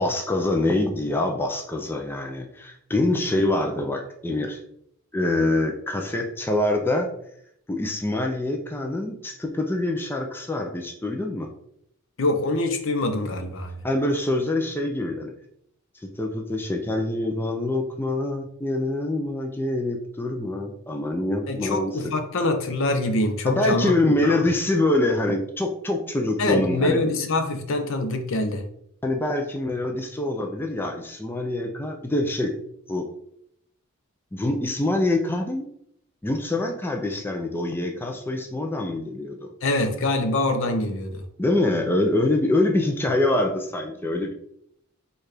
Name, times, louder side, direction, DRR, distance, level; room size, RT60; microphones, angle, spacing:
voice 1, 0.0-4.6 5.1-7.1 7.7-11.5 13.8-15.3 16.0-22.0 23.4-27.0 29.0-32.5 32.9-33.1 34.3-35.7 36.2-39.5 41.4-44.3, left 2 dB, 10° left, 2 dB, 0.4 m, -25 dB
voice 2, 12.2-13.7 21.5-23.9 24.2-24.5 26.4-28.6 39.6-41.2, left 2 dB, 60° left, 6 dB, 0.6 m, -24 dB
4.5 x 2.4 x 4.8 m, 0.72 s
head